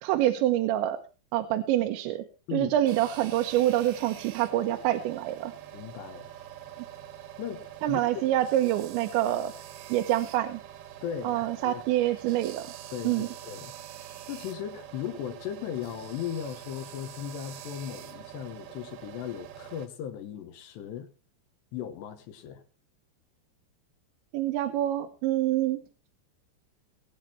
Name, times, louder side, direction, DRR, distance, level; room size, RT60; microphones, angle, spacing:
voice 1, 0.0-1.0 1.3-2.2 2.5-5.5 7.8-9.5 9.9-10.6 11.2-12.6 13.0-13.3 24.3-25.8, right 13 dB, 85° right, 3.2 m, -26 dB
sound 1, 2.9-19.9, right 11 dB, 70° right, 2.7 m, -45 dB
voice 2, 5.7-6.3 7.4-8.3 11.0-11.8 12.9-13.7 14.3-21.1 21.7-22.6, left 9 dB, 75° left, 3.4 m, -37 dB
21.5 x 8.7 x 4.4 m
omnidirectional pair, 5.2 m